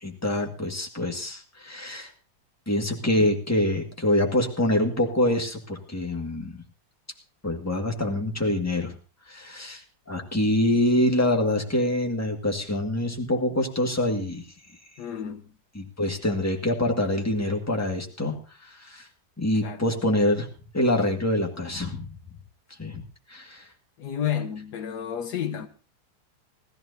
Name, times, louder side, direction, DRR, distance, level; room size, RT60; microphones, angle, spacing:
voice 1, 0.0-2.1 2.7-6.6 7.4-9.0 9.3-14.4 15.8-18.4 18.6-19.1 19.4-20.5 20.7-22.1 22.8-23.0 23.3-23.7, left 1 dB, 10° left, 1.8 m, -25 dB
voice 2, 15.0-15.5 19.6-19.8 24.0-25.7, left 9 dB, 75° left, 1.5 m, -31 dB
19.0 x 14.0 x 2.7 m
omnidirectional pair, 1.8 m